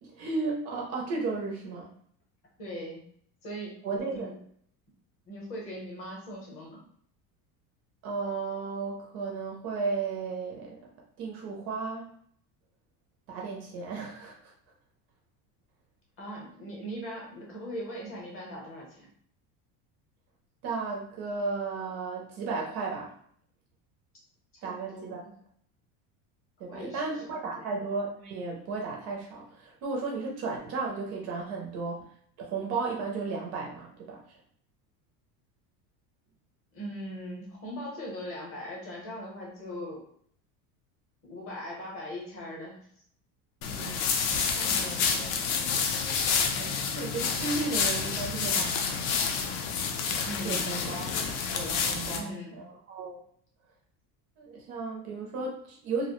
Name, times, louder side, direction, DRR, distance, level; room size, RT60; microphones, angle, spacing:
voice 1, 0.0-1.9 3.8-4.3 8.0-10.8 11.2-12.1 13.3-14.5 20.6-23.1 24.6-25.2 26.6-32.0 32.4-34.2 43.6-44.0 44.8-44.9 46.6-49.2 50.4-51.3 51.5-53.2 54.4-56.1, right 4 dB, 35° right, -1 dB, 0.4 m, -34 dB
voice 2, 2.6-3.0 3.4-3.8 4.1-4.3 5.3-6.8 16.2-19.1 24.5-25.1 26.7-27.0 27.3-27.6 36.7-40.0 41.2-42.8 44.3-45.4 50.2-50.7 52.1-52.6, equal, 30° left, -3 dB, 0.7 m, -40 dB
sound 1, 43.6-52.2, left 6 dB, 65° left, 0.5 m, -29 dB
2.4 x 2.0 x 2.9 m, 0.63 s
cardioid pair, 175°, 45 cm